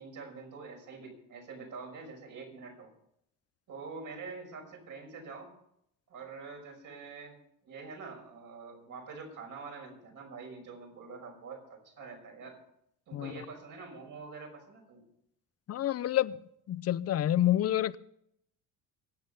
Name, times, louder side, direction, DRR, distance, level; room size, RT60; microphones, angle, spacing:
voice 1, 0.0-2.9 3.7-5.5 6.1-7.4 7.6-12.6 13.1-15.0, right 4 dB, 60° right, 5.9 m, -45 dB
voice 2, 15.7-16.4 16.7-18.0, left 12 dB, 45° left, 0.6 m, -28 dB
23.5 x 8.8 x 5.5 m
cardioid pair, 105°, 36 cm